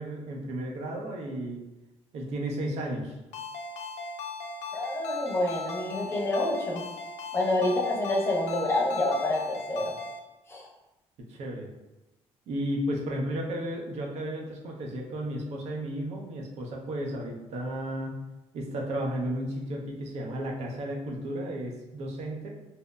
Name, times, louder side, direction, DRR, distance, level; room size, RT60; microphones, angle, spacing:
voice 1, 0.0-1.6 2.1-3.1 11.3-11.7 12.5-18.1 18.5-22.5, right 1 dB, 75° right, 0 dB, 0.5 m, -33 dB
Ringtone, 3.3-10.2, left 3 dB, 75° left, 0.4 m, -38 dB
voice 2, 4.7-6.8 7.3-9.9 10.5-10.7, left 2 dB, 20° left, -2 dB, 0.6 m, -27 dB
2.8 x 2.0 x 2.2 m, 1.0 s
cardioid pair, 95°, 11 cm